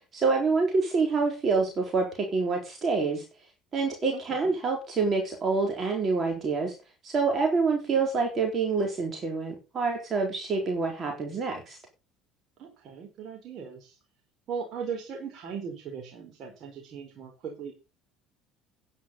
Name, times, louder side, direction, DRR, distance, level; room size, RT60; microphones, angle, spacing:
voice 1, 0.1-3.2 3.7-6.7 7.0-11.8, right 4 dB, 35° right, 2 dB, 4.1 m, -27 dB
voice 2, 4.1-4.5 12.6-14.0 14.5-17.7, right 6 dB, 55° right, 2 dB, 4.1 m, -38 dB
10.5 x 10.0 x 5.5 m, 0.31 s
supercardioid pair, 90°, 0 cm